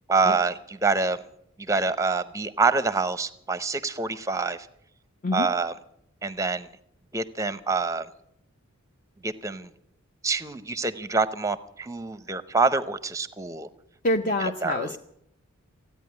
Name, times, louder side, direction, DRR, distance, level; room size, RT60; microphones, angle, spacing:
voice 1, 0.1-1.2 1.6-4.7 5.3-5.7 6.2-6.7 7.1-8.1 9.2-9.7 10.2-13.7 14.6-15.0, right 4 dB, 15° right, 14 dB, 0.6 m, -26 dB
voice 2, 14.0-15.0, left 2 dB, 35° left, 5 dB, 0.6 m, -26 dB
15.5 x 9.3 x 9.5 m, 0.76 s
head